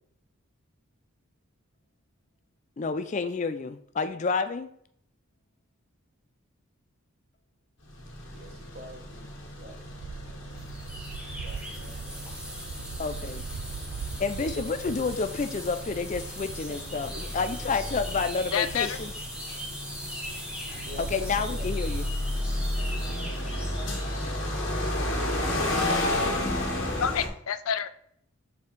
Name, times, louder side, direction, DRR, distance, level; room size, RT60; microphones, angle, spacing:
voice 1, 2.8-4.7 13.0-13.5 14.2-17.1 17.3-19.1 21.0-22.1, left 4 dB, 35° left, 10 dB, 0.4 m, -29 dB
sound 1, 7.9-27.3, left 1 dB, 55° left, 1.6 m, -33 dB
voice 2, 8.3-9.8 10.2-12.3 13.1-13.3 16.7-17.9 19.5-19.7 20.7-21.8 22.8-23.2 25.3-26.4, right 1 dB, 45° right, 2 dB, 1.2 m, -47 dB
sound 2, 9.8-22.2, right 6 dB, 80° right, 0.4 m, -42 dB
sound 3, 10.6-24.4, equal, 5° right, 1.4 m, -41 dB
voice 3, 18.5-19.0 27.0-27.9, left 8 dB, 85° left, 11 dB, 0.5 m, -28 dB
7.1 x 4.8 x 3.3 m, 0.66 s
head